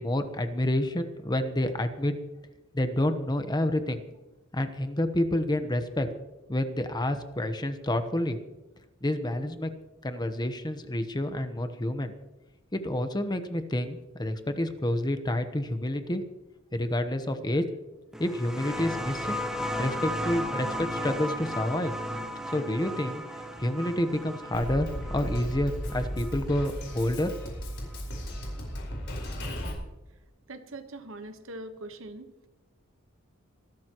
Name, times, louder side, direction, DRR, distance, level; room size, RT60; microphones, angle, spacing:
voice 1, 0.0-2.2 2.7-4.0 4.5-6.1 6.5-8.4 9.0-9.7 10.0-12.1 12.7-16.2 16.7-17.6 18.2-19.4 19.8-21.9 22.5-23.2 23.6-27.3, left 1 dB, 20° left, 8 dB, 1.0 m, -28 dB
sound 1, 18.1-27.4 28.5-28.6, equal, 5° right, 1.2 m, -35 dB
Drum kit, 24.5-29.7, equal, 60° left, 4.7 m, -35 dB
voice 2, 30.5-32.3, right 2 dB, 70° right, 8 dB, 1.3 m, -42 dB
25.0 x 12.5 x 3.1 m, 1.0 s
head